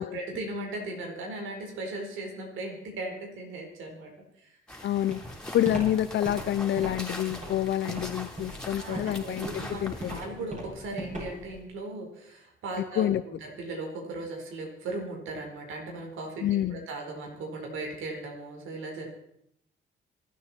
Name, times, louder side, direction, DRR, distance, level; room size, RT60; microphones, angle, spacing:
voice 1, 0.0-4.1 4.4-4.5 8.7-19.1, right 2 dB, 85° right, 1 dB, 4.4 m, -37 dB
sound 1, 4.7-10.3, left 1 dB, 5° left, 3.5 m, -41 dB
voice 2, 4.8-5.2 5.5-10.4 13.0-13.2 16.4-16.9, left 12 dB, 65° left, 12 dB, 0.6 m, -28 dB
Walk footsteps, 5.1-11.6, right 1 dB, 40° right, 7.9 m, -38 dB
27.0 x 9.4 x 4.4 m, 0.75 s
cardioid pair, 90°, 20 cm